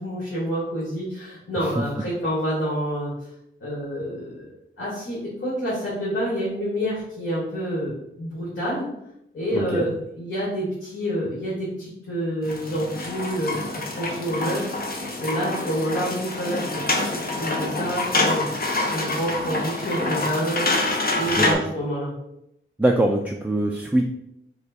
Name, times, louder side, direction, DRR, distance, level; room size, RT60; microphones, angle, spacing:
voice 1, 0.0-3.1 3.6-4.5 4.8-7.9 8.2-8.9 9.3-14.9 15.2-18.5 18.9-20.6 21.1-22.1, equal, 65° left, -7 dB, 1.7 m, -28 dB
voice 2, 9.5-9.9 21.3-21.6 22.8-24.0, right 1 dB, 5° right, 1 dB, 0.3 m, -23 dB
sound 1, 12.4-21.5, left 2 dB, 45° left, 0.8 m, -26 dB
4.9 x 2.3 x 4.3 m, 0.81 s
wide cardioid pair, 105°, 21 cm